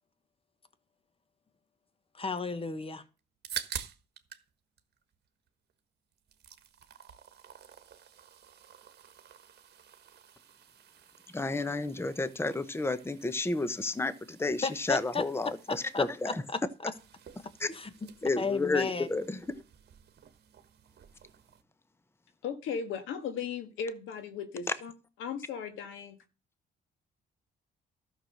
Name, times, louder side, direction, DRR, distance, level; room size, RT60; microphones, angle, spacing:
voice 1, 2.1-3.0 14.6-15.2 15.7-16.9 17.7-19.1, left 4 dB, 30° left, 1.5 m, -34 dB
sound 1, 3.2-4.5 4.8-5.8 6.1-21.6, right 9 dB, 55° right, 1.4 m, -48 dB
voice 2, 11.3-16.3 17.6-17.7 18.2-19.4, left 3 dB, 10° left, 0.9 m, -31 dB
voice 3, 22.4-24.9 25.2-26.2, left 6 dB, 90° left, 1.7 m, -37 dB
12.5 x 6.3 x 6.5 m
cardioid pair, 90°, 20 cm